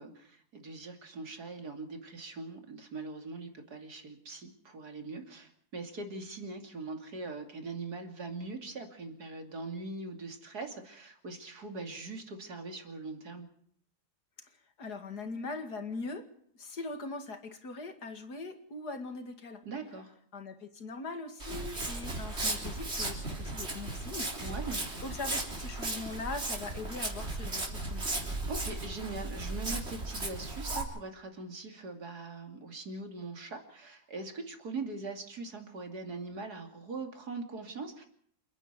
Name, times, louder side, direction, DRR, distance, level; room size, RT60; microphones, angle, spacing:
voice 1, 0.0-13.4 19.6-20.1 24.4-25.0 28.4-38.1, right 3 dB, 90° right, 5 dB, 3.3 m, -41 dB
voice 2, 14.8-16.2 16.6-19.6 20.3-24.6 25.0-28.3, left 3 dB, 85° left, 7 dB, 2.8 m, -41 dB
Walk footsteps, 21.4-30.8, right 2 dB, 40° right, 4.1 m, -36 dB
28.5 x 10.0 x 9.6 m, 0.64 s
omnidirectional pair, 1.6 m